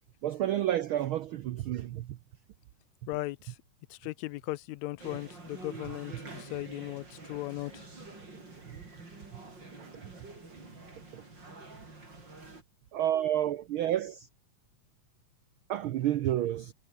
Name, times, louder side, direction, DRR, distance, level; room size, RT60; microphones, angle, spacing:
voice 1, 0.2-2.2 9.8-9.9 11.1-11.2 12.9-14.3 15.7-16.7, right 12 dB, 90° right, 1.1 m, -30 dB
voice 2, 3.1-3.6 3.9-7.8, left 18 dB, 80° left, 1.9 m, -37 dB
sound 1, 5.0-12.6, right 3 dB, 35° right, 6.3 m, -47 dB
omnidirectional pair, 3.3 m